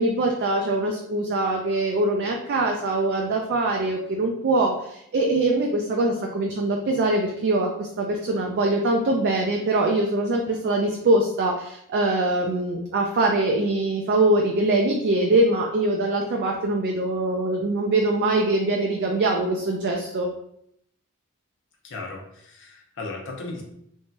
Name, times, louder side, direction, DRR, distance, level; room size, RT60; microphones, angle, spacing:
voice 1, 0.0-20.3, right 2 dB, 50° right, 0 dB, 0.3 m, -23 dB
voice 2, 21.8-23.6, left 3 dB, 55° left, 0 dB, 0.6 m, -36 dB
3.0 x 2.6 x 2.2 m, 0.73 s
head